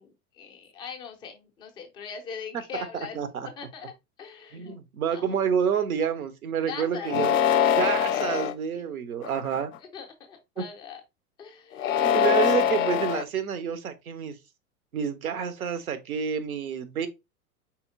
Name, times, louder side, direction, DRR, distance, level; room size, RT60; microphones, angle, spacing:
voice 1, 0.0-3.9 4.2-4.8 5.1-5.4 6.6-7.2 8.7-8.8 9.8-11.0 11.4-12.0, left 7 dB, 10° left, 0.4 m, -41 dB
voice 2, 3.1-3.5 4.5-7.4 7.8-9.7 12.0-14.4 14.9-17.1, right 7 dB, 70° right, 0.8 m, -28 dB
sound 1, 7.0-8.5 9.2-9.8 11.7-13.2, left 9 dB, 60° left, 0.5 m, -23 dB
4.3 x 4.1 x 2.5 m
figure-of-eight pair, 90°, 45 cm